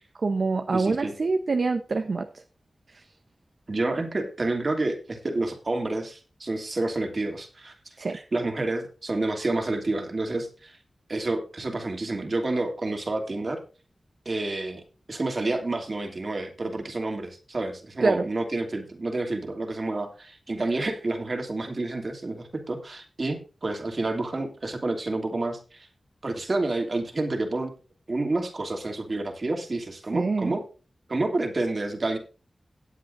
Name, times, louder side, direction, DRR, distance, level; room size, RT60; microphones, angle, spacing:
voice 1, 0.2-2.3 2.9-3.0 8.0-8.2 18.0-18.2 30.1-30.6, right 3 dB, 65° right, 7 dB, 0.9 m, -25 dB
voice 2, 0.7-1.1 3.7-7.7 8.1-10.8 11.1-13.6 14.2-25.9 26.2-27.7 28.1-30.6 31.1-32.2, right 2 dB, 50° right, 4 dB, 2.7 m, -29 dB
18.0 x 8.4 x 2.6 m, 0.35 s
wide cardioid pair, 60°, 0 cm